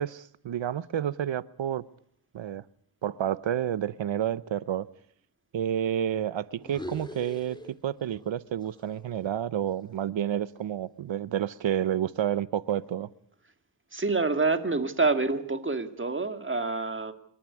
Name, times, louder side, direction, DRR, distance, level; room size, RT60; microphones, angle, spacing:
voice 1, 0.0-1.8 2.3-2.6 3.0-4.9 5.5-7.6 7.8-13.1, right 10 dB, 70° right, 17 dB, 0.9 m, -30 dB
sound 1, 6.6-8.3 8.6-10.8, left 1 dB, 10° left, 2.9 m, -44 dB
voice 2, 13.9-17.1, right 3 dB, 25° right, 8 dB, 2.2 m, -27 dB
27.0 x 12.5 x 9.7 m, 0.68 s
wide cardioid pair, 110°, 47 cm